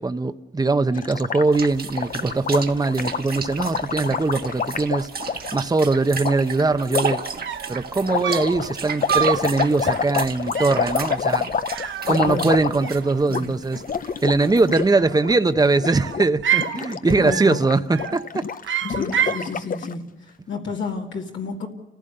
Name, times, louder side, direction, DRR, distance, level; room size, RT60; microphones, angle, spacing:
voice 1, 0.0-7.2 7.7-11.5 12.1-13.8 14.2-18.4, right 3 dB, 20° right, 0.8 m, -21 dB
Gurgling, 1.0-5.6 6.2-6.4 6.9-7.3 8.0-13.0 13.2-13.4 13.7-14.9 15.1-15.4 15.7-16.2 16.5-19.9, left 6 dB, 45° left, 0.7 m, -27 dB
sound 1, 1.5-15.1, right 5 dB, 50° right, 1.4 m, -34 dB
sound 2, 7.2-7.3 7.5-7.8 8.2-8.6 9.1-9.5 9.8-10.1 10.6-10.9 11.7-12.6 12.8-13.5 14.8-15.4 15.8-16.8 17.3-17.6 17.9-18.3 18.6-19.5, right 9 dB, 75° right, 0.9 m, -27 dB
voice 2, 12.1-12.5 13.3-13.5 17.0-17.6 18.9-21.7, left 4 dB, 75° left, 2.2 m, -31 dB
30.0 x 15.0 x 6.6 m
cardioid pair, 100°, 20 cm